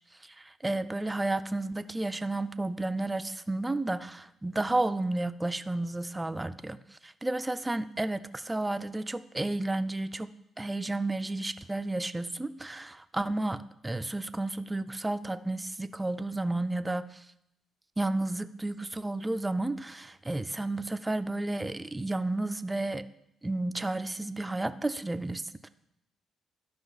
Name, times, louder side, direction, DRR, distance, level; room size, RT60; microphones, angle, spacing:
voice 1, 0.2-10.3 10.6-17.3 18.0-23.0 23.4-25.7, right 2 dB, 15° right, 12 dB, 0.4 m, -32 dB
13.0 x 5.2 x 4.0 m, 0.81 s
cardioid pair, 90°, 0 cm